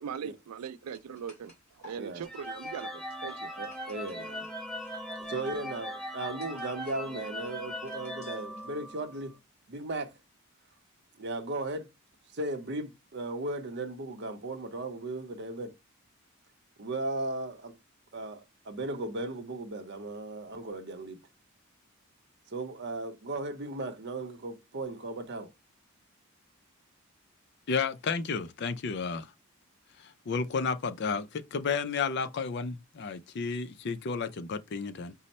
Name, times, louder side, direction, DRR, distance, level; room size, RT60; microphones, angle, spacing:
voice 1, 0.0-1.5 1.8-3.5 5.1-5.2, right 7 dB, 85° right, 0.4 m, -40 dB
sound 1, 0.9-8.7, left 1 dB, 30° left, 2.3 m, -59 dB
sound 2, 2.2-9.2, equal, ahead, 0.5 m, -39 dB
voice 2, 3.6-4.5 5.3-9.3 9.7-10.1 11.2-11.9 12.3-15.7 16.8-17.8 18.1-21.2 22.5-25.5, right 2 dB, 50° right, 0.7 m, -36 dB
voice 3, 27.7-29.3 30.0-35.1, left 5 dB, 50° left, 0.4 m, -32 dB
5.3 x 2.1 x 4.1 m
head